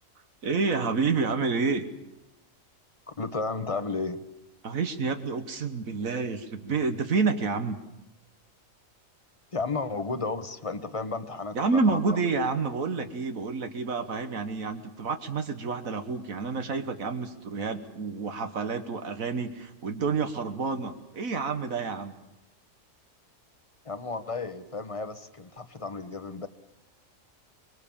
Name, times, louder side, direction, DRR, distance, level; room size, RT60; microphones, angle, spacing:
voice 1, 0.4-1.9 4.6-7.8 11.5-22.1, right 4 dB, 80° right, 7 dB, 1.8 m, -29 dB
voice 2, 3.1-4.2 9.5-12.2 23.8-26.5, left 3 dB, 25° left, 12 dB, 1.2 m, -33 dB
25.0 x 22.5 x 7.2 m, 0.95 s
omnidirectional pair, 1.4 m